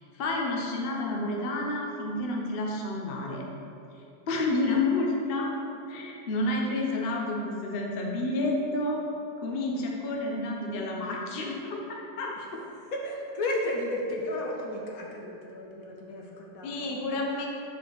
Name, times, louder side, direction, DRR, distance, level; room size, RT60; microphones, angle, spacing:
voice 1, 0.0-3.5 4.3-5.5 5.9-9.0 9.4-12.3 16.6-17.5, left 2 dB, 50° left, -1 dB, 0.8 m, -30 dB
voice 2, 12.9-16.9, left 1 dB, 65° left, -1 dB, 1.1 m, -33 dB
6.5 x 5.0 x 4.0 m, 2.7 s
omnidirectional pair, 1.8 m